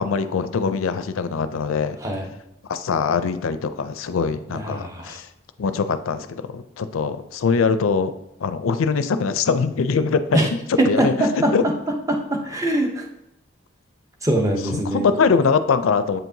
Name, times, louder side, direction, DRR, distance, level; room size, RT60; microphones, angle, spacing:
voice 1, 0.0-2.0 2.7-5.3 5.6-8.1 8.4-11.6 14.6-16.2, left 5 dB, 90° left, 11 dB, 0.4 m, -22 dB
voice 2, 4.5-5.2 10.3-10.5 10.8-11.5 12.1-13.1 14.2-15.1, right 1 dB, 15° right, 2 dB, 0.7 m, -22 dB
7.9 x 4.6 x 2.7 m, 0.84 s
head